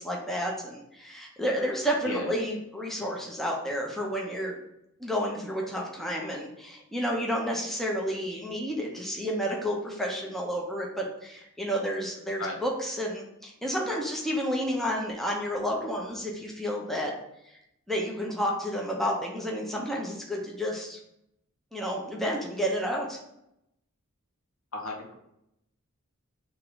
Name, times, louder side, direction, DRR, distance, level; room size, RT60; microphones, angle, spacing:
voice 1, 0.0-4.6 5.0-17.1 17.5-17.6 17.9-21.0 21.7-23.2, equal, ahead, -2 dB, 0.7 m, -31 dB
voice 2, 24.7-25.1, left 2 dB, 65° left, 0 dB, 1.0 m, -34 dB
3.7 x 3.0 x 4.6 m, 0.80 s
head